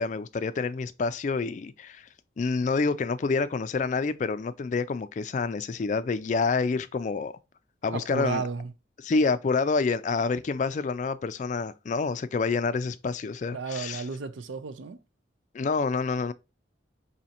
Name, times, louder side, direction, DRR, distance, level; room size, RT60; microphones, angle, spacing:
voice 1, 0.0-2.1 2.4-7.3 7.8-8.4 9.0-14.0 15.5-16.3, left 4 dB, 40° left, 0.3 m, -28 dB
voice 2, 7.9-8.7 13.5-15.0, right 4 dB, 85° right, 0.5 m, -33 dB
5.1 x 2.7 x 2.8 m
head